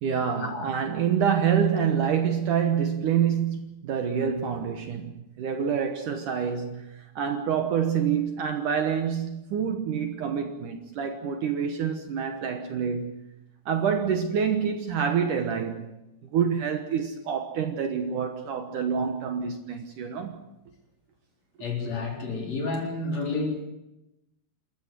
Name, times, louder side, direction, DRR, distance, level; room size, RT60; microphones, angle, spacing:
voice 1, 0.0-13.2 13.7-16.0 16.3-20.4, right 7 dB, 65° right, 2.4 m, -27 dB
voice 2, 21.6-23.7, left 3 dB, 45° left, 5.0 m, -30 dB
28.5 x 13.5 x 7.6 m
omnidirectional pair, 4.5 m